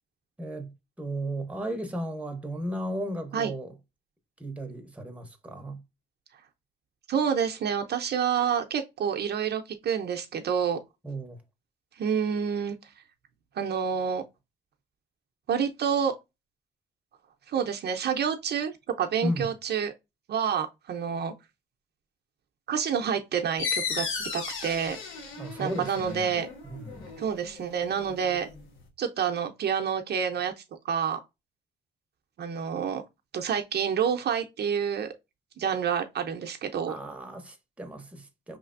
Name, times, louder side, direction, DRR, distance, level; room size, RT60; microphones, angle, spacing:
voice 1, 0.4-3.8 4.4-5.8 11.0-11.4 19.2-19.5 25.4-26.4 26.6-27.2 36.9-38.6, right 1 dB, 5° right, 0.9 m, -35 dB
voice 2, 7.1-10.8 12.0-12.8 13.6-14.2 15.5-16.1 17.5-19.9 20.3-21.3 22.7-24.1 24.3-25.0 25.6-26.5 27.2-28.5 29.0-30.5 30.9-31.2 32.4-33.0 33.3-35.1 35.6-36.9, right 7 dB, 55° right, 0.6 m, -28 dB
sound 1, 23.6-28.9, left 5 dB, 85° left, 1.2 m, -36 dB
4.9 x 3.3 x 2.5 m
cardioid pair, 90°, 20 cm